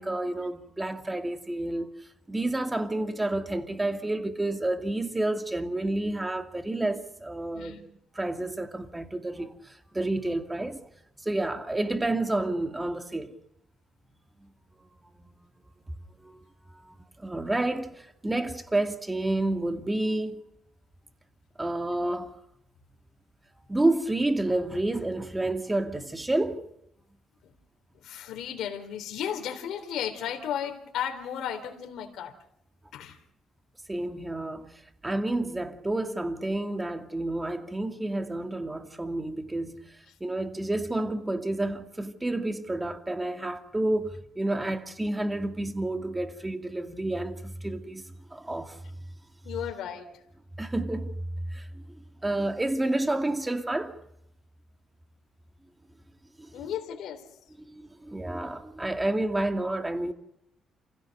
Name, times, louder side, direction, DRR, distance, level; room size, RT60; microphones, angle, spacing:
voice 1, 0.0-7.8 8.1-10.8 11.2-13.3 14.4-14.5 14.8-14.9 15.2-15.3 16.2-16.4 16.8-20.4 21.6-22.4 23.7-26.6 33.9-34.7 35.0-48.8 50.6-51.1 51.5-54.0 56.4-56.7 57.6-60.1, right 2 dB, 15° right, 2.4 m, -30 dB
voice 2, 27.9-32.3 32.9-33.2 49.4-50.1 56.5-57.3, left 9 dB, 80° left, 3.5 m, -34 dB
28.5 x 16.0 x 6.7 m
cardioid pair, 90°, 0 cm